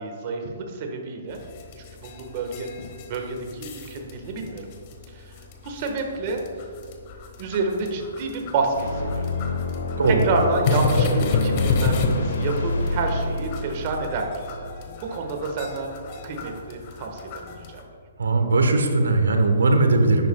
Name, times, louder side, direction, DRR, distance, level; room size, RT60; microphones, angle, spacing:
voice 1, 0.0-1.4 1.8-2.7 3.1-4.6 5.1-5.3 5.6-6.4 7.4-9.3 10.1-14.3 15.1-16.0 16.2-17.8, right 3 dB, 40° right, 3 dB, 1.4 m, -28 dB
sound 1, 1.3-17.8, left 3 dB, 40° left, 1.3 m, -31 dB
sound 2, 8.7-15.4, left 3 dB, 75° left, 1.1 m, -28 dB
voice 2, 10.0-10.3 18.2-20.3, right 3 dB, 85° right, 5 dB, 1.2 m, -19 dB
11.0 x 8.4 x 2.3 m, 2.5 s
hypercardioid pair, 145°, 0 cm